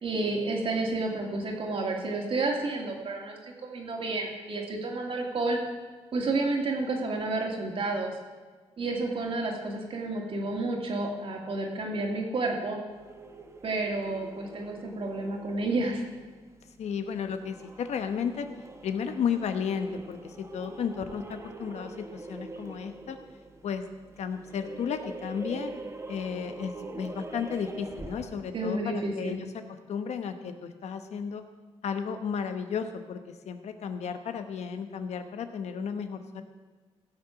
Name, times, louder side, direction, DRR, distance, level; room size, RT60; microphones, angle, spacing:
voice 1, 0.0-5.6 6.1-8.1 8.8-12.8 13.6-16.0 28.5-29.4, right 2 dB, 55° right, 1 dB, 2.4 m, -30 dB
sound 1, 12.9-28.6, right 2 dB, 25° right, 1.2 m, -44 dB
voice 2, 16.8-18.5 18.8-23.2 23.6-23.9 24.2-25.7 26.1-29.6 29.9-31.4 31.8-33.2 33.4-36.4, left 7 dB, 80° left, 8 dB, 1.1 m, -33 dB
16.0 x 7.0 x 5.9 m, 1.4 s
cardioid pair, 115°, 11 cm